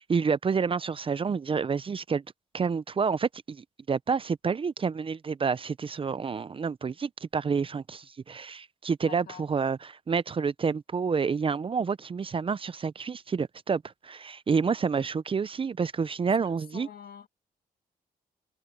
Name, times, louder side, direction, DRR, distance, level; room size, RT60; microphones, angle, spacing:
voice 1, 0.0-2.2 2.5-16.9, right 5 dB, 35° right, 0.6 m, -29 dB
voice 2, 9.0-9.4 16.4-17.3, left 9 dB, 75° left, 1.9 m, -46 dB
cardioid pair, 90°, 16 cm